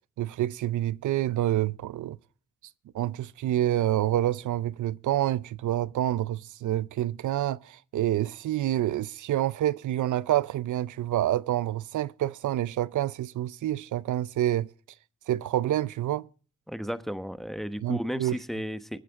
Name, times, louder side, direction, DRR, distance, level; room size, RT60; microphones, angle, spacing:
voice 1, 0.2-2.2 2.9-14.7 15.3-16.3 17.8-18.4, right 13 dB, 85° right, 0.5 m, -27 dB
voice 2, 16.7-19.0, equal, ahead, 1.1 m, -33 dB
22.0 x 9.3 x 3.6 m
cardioid pair, 50°, 29 cm